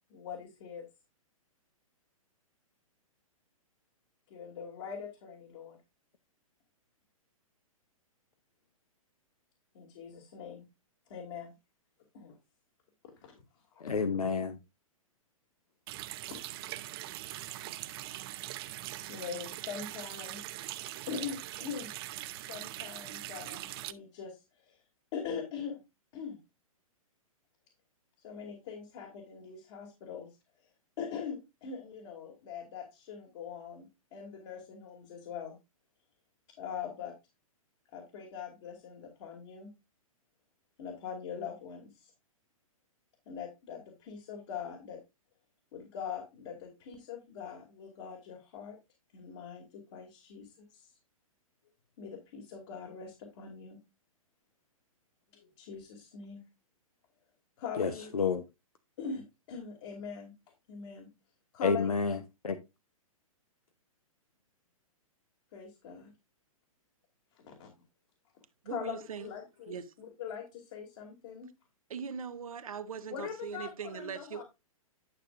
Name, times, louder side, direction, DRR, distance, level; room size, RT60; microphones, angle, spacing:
voice 1, 0.1-0.8 4.3-5.8 9.7-10.7 11.1-11.5 12.1-12.3 13.2-13.4 13.7-13.8 16.3-16.4 19.1-20.4 21.1-21.9 22.5-24.8 25.1-25.8 26.1-26.4 28.2-30.3 31.0-35.6 36.6-37.1 37.9-39.7 40.8-42.1 43.3-45.0 45.7-48.8 49.1-50.9 52.0-53.8 55.3-56.4 57.6-58.1 59.0-60.3 60.7-61.1 61.5-62.2 65.5-66.1 67.3-67.7 68.7-71.5 73.1-74.4, left 7 dB, 55° left, 2.8 m, -42 dB
voice 2, 13.8-14.6 57.8-58.4 61.6-62.2 62.4-62.6, left 5 dB, 85° left, 1.0 m, -29 dB
Water tap faucet, 15.9-23.9, right 15 dB, 45° right, 0.7 m, -42 dB
voice 3, 68.6-69.3 69.7-69.8 71.9-74.4, right 6 dB, 75° right, 1.4 m, -40 dB
11.5 x 6.5 x 2.6 m
hypercardioid pair, 125°, 18 cm